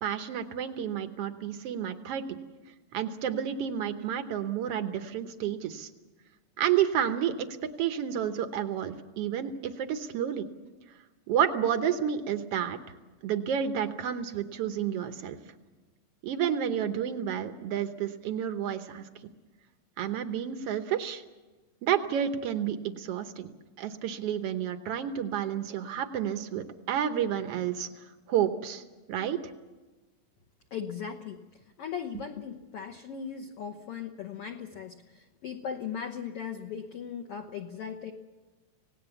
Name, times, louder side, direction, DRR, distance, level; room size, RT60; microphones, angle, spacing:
voice 1, 0.0-2.4 2.9-5.9 6.6-7.5 7.8-10.4 11.3-12.8 13.2-15.4 16.2-19.1 20.0-21.2 21.8-23.5 23.8-27.9 28.3-29.4, right 9 dB, 75° right, 8 dB, 1.4 m, -30 dB
voice 2, 30.7-31.4 31.8-38.1, left 7 dB, 75° left, 5 dB, 1.3 m, -38 dB
26.5 x 18.0 x 7.0 m, 1.2 s
omnidirectional pair, 4.2 m